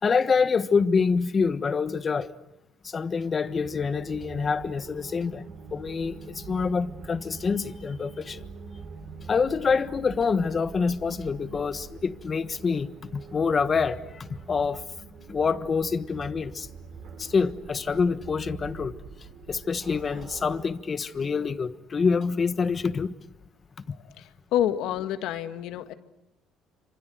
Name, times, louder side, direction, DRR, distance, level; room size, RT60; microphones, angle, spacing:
voice 1, 0.0-2.3 2.8-5.4 5.7-8.4 9.3-14.8 15.3-16.7 17.2-19.0 19.5-23.1, left 5 dB, 30° left, 1.4 m, -26 dB
sound 1, 3.4-20.7, right 5 dB, 55° right, 8.0 m, -44 dB
voice 2, 24.5-25.9, left 11 dB, 80° left, 1.8 m, -27 dB
28.0 x 26.5 x 7.9 m
cardioid pair, 115°, 0 cm